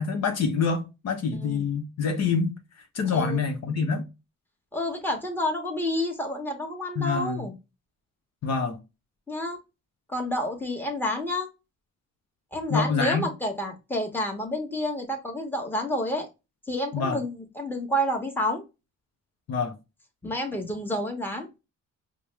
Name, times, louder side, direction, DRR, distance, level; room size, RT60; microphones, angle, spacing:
voice 1, 0.0-2.5 2.9-4.0 7.0-7.5 8.4-8.8 12.7-13.3 16.9-17.2 19.5-19.7, left 5 dB, 60° left, 0.9 m, -26 dB
voice 2, 1.3-1.7 3.1-3.4 4.7-7.5 9.3-9.6 10.1-11.5 12.5-16.3 16.7-18.6 20.2-21.5, left 1 dB, 5° left, 1.3 m, -29 dB
4.6 x 2.2 x 3.3 m
cardioid pair, 90°, 30 cm